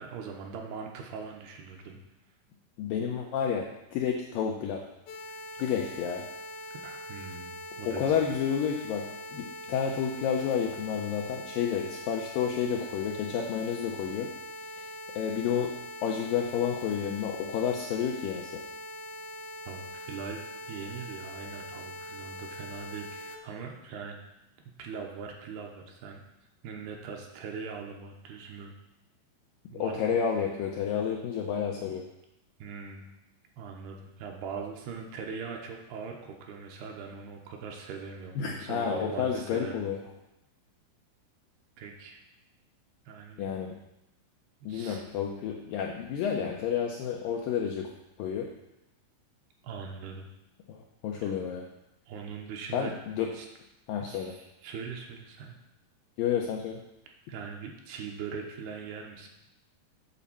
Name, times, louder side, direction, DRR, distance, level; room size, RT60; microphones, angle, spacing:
voice 1, 0.0-2.0 5.3-5.4 6.8-8.1 19.7-20.4 20.7-24.2 24.8-26.2 26.6-28.7 29.7-30.1 32.6-33.1 33.6-39.8 41.8-42.2 43.1-43.5 44.6-45.1 49.6-50.3 51.2-51.3 52.1-52.9 53.3-53.5 54.0-55.6 57.3-59.3, right 5 dB, 75° right, 2 dB, 2.8 m, -41 dB
voice 2, 2.8-4.8 5.6-6.3 7.9-14.3 14.8-14.9 15.2-15.7 16.0-18.6 29.7-32.1 38.4-40.0 43.4-43.7 44.7-47.9 48.2-48.5 50.7-51.6 52.7-53.3 53.9-54.3 56.2-56.8, left 7 dB, 90° left, 0 dB, 2.0 m, -30 dB
sound 1, 5.1-23.4, left 1 dB, 75° left, 2.3 m, -42 dB
8.7 x 4.1 x 7.0 m, 0.88 s
omnidirectional pair, 4.8 m